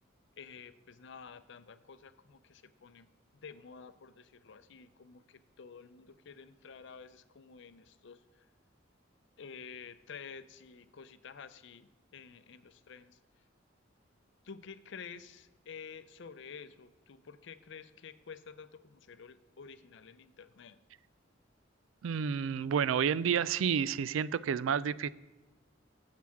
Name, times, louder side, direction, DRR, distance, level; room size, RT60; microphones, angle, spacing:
voice 1, 0.4-3.1 3.4-8.5 9.4-13.2 14.4-20.8, left 6 dB, 65° left, 13 dB, 0.5 m, -50 dB
voice 2, 22.0-25.1, right 7 dB, 85° right, 19 dB, 0.3 m, -30 dB
10.5 x 7.5 x 3.6 m, 1.1 s
head